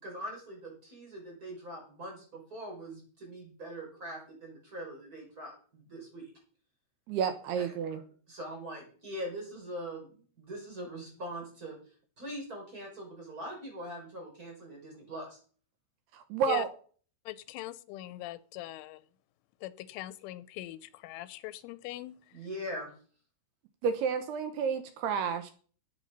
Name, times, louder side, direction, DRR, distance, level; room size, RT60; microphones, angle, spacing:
voice 1, 0.0-6.3 8.3-11.7 12.2-15.4 22.3-22.9, equal, 20° right, 0 dB, 5.8 m, -42 dB
voice 2, 7.1-8.0 16.1-16.7 23.8-25.5, right 6 dB, 75° right, 8 dB, 2.6 m, -30 dB
voice 3, 17.3-19.0 19.6-22.2, left 16 dB, 90° left, 15 dB, 3.2 m, -41 dB
14.0 x 8.8 x 5.4 m, 0.44 s
omnidirectional pair, 5.5 m